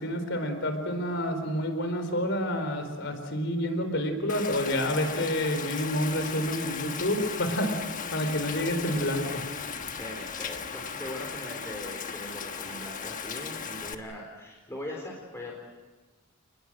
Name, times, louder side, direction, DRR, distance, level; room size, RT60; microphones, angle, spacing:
voice 1, 0.0-7.7 8.1-9.4, equal, 60° left, 7 dB, 4.2 m, -29 dB
Rain, 4.3-13.9, left 6 dB, 40° left, 1.4 m, -37 dB
voice 2, 10.0-15.5, left 1 dB, 15° left, -1 dB, 3.9 m, -40 dB
29.5 x 20.5 x 7.8 m, 1.3 s
head